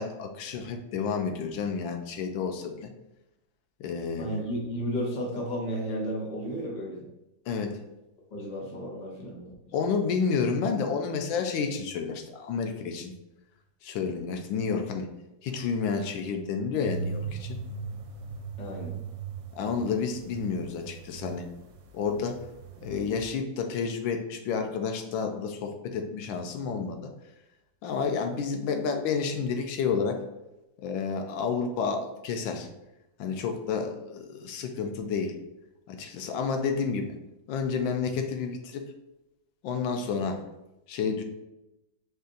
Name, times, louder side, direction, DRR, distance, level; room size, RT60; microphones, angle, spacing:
voice 1, 0.0-2.9 3.8-4.3 7.5-7.8 9.7-13.1 13.8-15.1 15.4-17.6 19.6-21.5 21.9-22.4 22.8-27.1 27.8-30.2 30.8-32.7 33.2-35.3 35.9-37.1 37.5-38.8 39.6-40.4 40.9-41.2, left 5 dB, 85° left, 5 dB, 1.4 m, -30 dB
voice 2, 4.2-7.0 8.3-9.5 18.6-18.9, equal, 30° left, -3 dB, 1.0 m, -33 dB
sound 1, 16.8-21.9 22.1-23.2, right 5 dB, 80° right, 1.3 m, -38 dB
5.2 x 2.5 x 3.8 m, 0.94 s
omnidirectional pair, 2.0 m